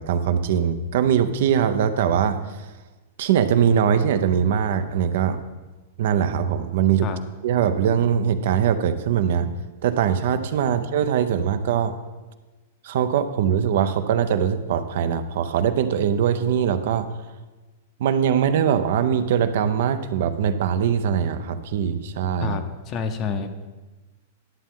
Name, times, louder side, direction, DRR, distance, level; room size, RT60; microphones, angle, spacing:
voice 1, 0.0-2.4 3.2-5.4 6.0-7.1 7.4-9.5 9.8-11.9 12.8-17.1 18.0-22.6, right 8 dB, 65° right, 10 dB, 0.6 m, -21 dB
voice 2, 22.4-23.7, left 5 dB, 30° left, 8 dB, 0.7 m, -29 dB
11.0 x 7.2 x 3.7 m, 1.2 s
supercardioid pair, 155°, 0 cm